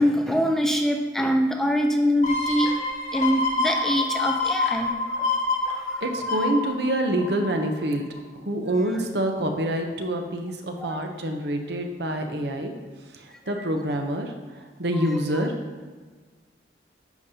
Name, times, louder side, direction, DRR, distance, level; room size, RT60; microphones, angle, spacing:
voice 1, 0.0-2.7 3.1-4.9 5.8-6.0 10.8-11.0 15.0-15.4, equal, ahead, 3 dB, 0.4 m, -24 dB
sound 1, 2.2-7.7 8.2-8.3, left 3 dB, 45° left, 1.2 m, -27 dB
voice 2, 6.0-8.0 8.3-12.7 13.1-15.5, right 1 dB, 65° right, 4 dB, 0.8 m, -27 dB
10.5 x 5.2 x 2.8 m, 1.4 s
head